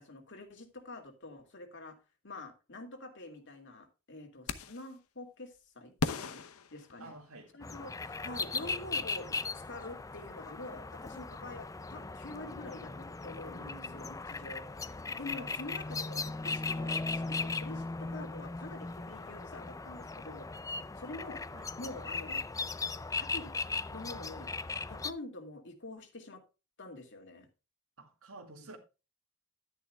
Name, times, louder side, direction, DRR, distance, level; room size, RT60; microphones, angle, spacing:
voice 1, 0.0-2.0 2.2-6.4 6.7-7.2 7.5-20.5 21.0-21.4 21.8-22.4 23.2-23.6 23.9-24.5 24.9-26.4 26.8-27.5 28.6-28.7, left 2 dB, 60° left, 2.3 m, -46 dB
sound 1, 4.5-4.9 6.0-7.5, left 3 dB, 85° left, 0.9 m, -37 dB
voice 2, 7.0-7.5 13.6-14.0 15.3-15.5 21.5-21.7 28.0-28.8, right 2 dB, 75° right, 2.1 m, -51 dB
sound 2, 7.6-25.1, left 4 dB, 15° left, 0.4 m, -38 dB
11.5 x 10.0 x 2.3 m
head